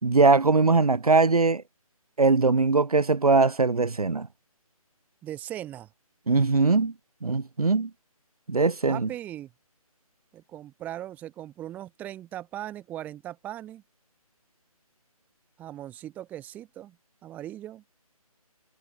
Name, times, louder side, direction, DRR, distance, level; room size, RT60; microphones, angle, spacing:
voice 1, 0.0-1.6 2.2-4.3 6.3-6.9 7.2-7.9 8.5-9.1, right 4 dB, 75° right, 3.2 m, -21 dB
voice 2, 5.2-5.9 8.9-9.5 10.3-13.8 15.6-17.0 17.2-17.8, right 12 dB, 10° right, 4.3 m, -39 dB
figure-of-eight pair, 165°, 19 cm